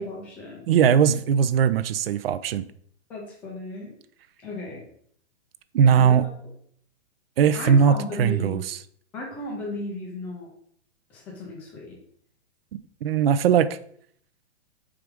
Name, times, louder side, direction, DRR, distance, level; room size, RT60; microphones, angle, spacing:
voice 1, 0.0-0.6 3.1-3.9 4.4-4.8 5.9-6.2 7.5-8.6 9.1-10.5 11.1-11.9, left 2 dB, 5° left, -2 dB, 0.4 m, -35 dB
voice 2, 0.7-2.6 5.7-6.3 7.4-8.8 13.0-13.7, right 7 dB, 55° right, 14 dB, 0.5 m, -19 dB
6.0 x 4.9 x 3.5 m, 0.62 s
hypercardioid pair, 160°, 35 cm